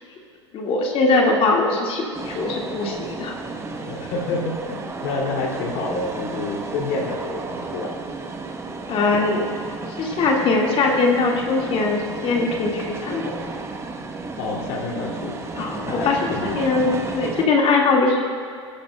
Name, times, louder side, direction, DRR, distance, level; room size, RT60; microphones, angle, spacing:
voice 1, 0.5-3.4 8.9-9.5 10.0-13.5 15.6-18.2, left 3 dB, 35° left, 0 dB, 1.9 m, -21 dB
sound 1, 2.1-17.5, right 3 dB, 15° right, 1.0 m, -33 dB
voice 2, 3.4-7.9 14.4-15.5 15.8-16.6 16.8-16.9, left 3 dB, 55° left, 0 dB, 2.6 m, -29 dB
18.5 x 10.0 x 2.2 m, 2.2 s
hypercardioid pair, 90°, 16 cm